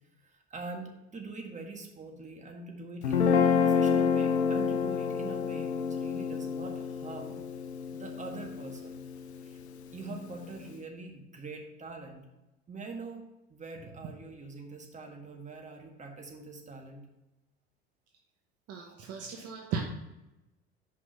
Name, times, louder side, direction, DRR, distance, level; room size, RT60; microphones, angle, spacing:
voice 1, 0.2-7.3 7.9-9.0 9.4-9.6 9.9-12.3 12.7-13.2 13.5-17.0, right 3 dB, 20° right, 2 dB, 1.6 m, -43 dB
Guitar, 3.0-9.4, left 6 dB, 90° left, 0.5 m, -28 dB
voice 2, 18.7-19.8, right 6 dB, 50° right, 1 dB, 1.0 m, -36 dB
5.6 x 5.3 x 5.2 m, 0.98 s
hypercardioid pair, 70°, 32 cm